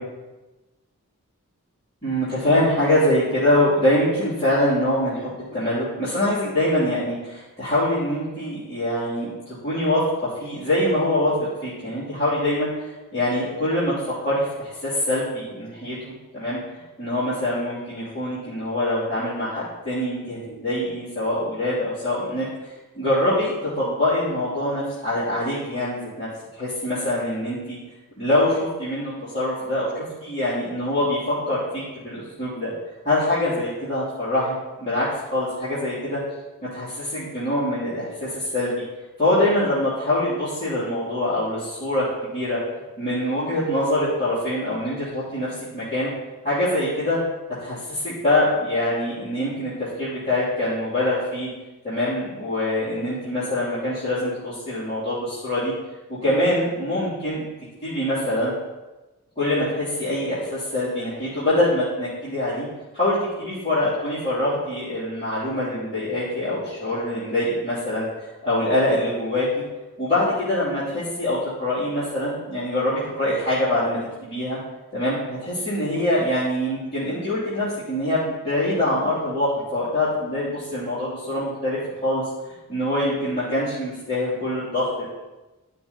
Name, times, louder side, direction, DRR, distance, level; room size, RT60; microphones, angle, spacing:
voice 1, 2.0-9.3 9.6-10.0 10.4-11.3 11.6-22.5 22.9-26.3 26.5-27.8 28.2-32.7 33.0-36.2 36.7-38.7 39.2-42.1 42.3-42.6 43.0-46.1 46.4-47.2 47.6-49.7 50.0-51.5 51.8-55.7 56.2-57.5 57.8-58.5 59.4-62.7 62.9-68.0 68.4-69.6 70.0-74.6 74.9-82.2 82.7-85.1, left 1 dB, 25° left, -14 dB, 3.1 m, -24 dB
12.0 x 6.0 x 4.1 m, 1.1 s
head